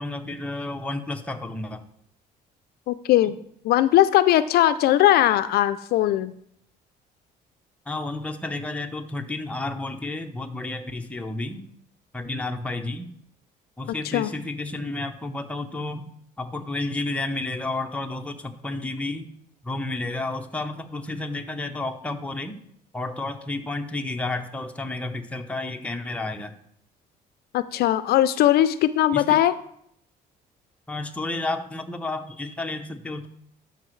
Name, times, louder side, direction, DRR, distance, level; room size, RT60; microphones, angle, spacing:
voice 1, 0.0-1.8 3.2-3.3 7.9-11.6 12.1-13.1 13.8-16.0 16.4-19.3 19.6-22.6 22.9-26.5 29.1-29.4 30.9-33.3, left 2 dB, 10° left, 4 dB, 0.7 m, -31 dB
voice 2, 2.9-3.4 3.6-6.3 14.1-14.3 27.5-29.5, left 13 dB, 70° left, 13 dB, 0.4 m, -19 dB
12.5 x 5.1 x 3.2 m, 0.69 s
cardioid pair, 110°, 17 cm